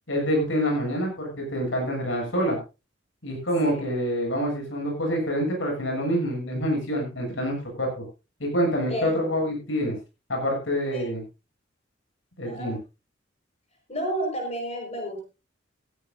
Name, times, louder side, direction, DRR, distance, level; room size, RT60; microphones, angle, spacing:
voice 1, 0.1-2.6 3.2-8.0 8.4-10.0 10.3-11.2 12.4-12.8, equal, 85° left, 2 dB, 7.7 m, -26 dB
voice 2, 8.9-9.6 10.9-11.0 12.4-12.8 13.9-15.3, equal, 35° left, 3 dB, 5.4 m, -31 dB
16.0 x 15.5 x 2.7 m, 0.29 s
head